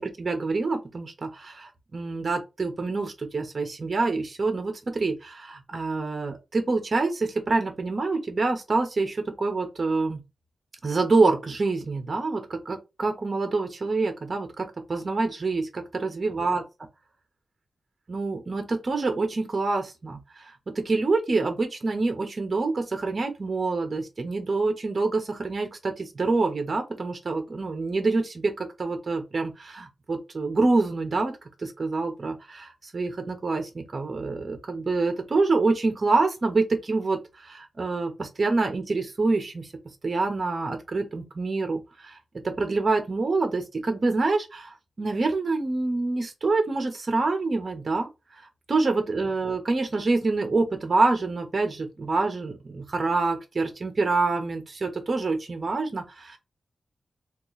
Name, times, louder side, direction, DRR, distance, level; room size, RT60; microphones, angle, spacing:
voice 1, 0.0-10.2 10.8-16.6 18.1-39.7 40.0-42.2 42.4-48.1 48.4-56.4, right 3 dB, 40° right, 0.7 m, -26 dB
2.9 x 2.4 x 3.8 m
wide cardioid pair, 165°, 0 cm